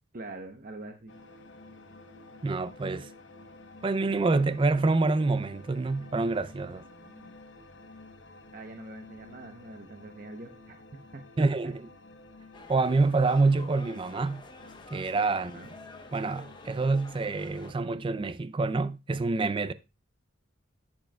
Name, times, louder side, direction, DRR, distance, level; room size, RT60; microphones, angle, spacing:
voice 1, 0.1-1.1 6.9-7.3 8.5-10.8 11.1-11.4 15.3-15.7, right 2 dB, 45° right, 0.8 m, -44 dB
sound 1, 1.1-17.3, left 2 dB, 65° left, 1.1 m, -51 dB
voice 2, 2.4-3.1 3.8-6.8 11.4-11.8 12.7-14.4 14.9-15.6 16.1-19.7, right 3 dB, 25° right, 0.3 m, -26 dB
sound 2, 12.5-17.7, left 2 dB, 25° left, 0.8 m, -49 dB
11.5 x 7.6 x 2.2 m
head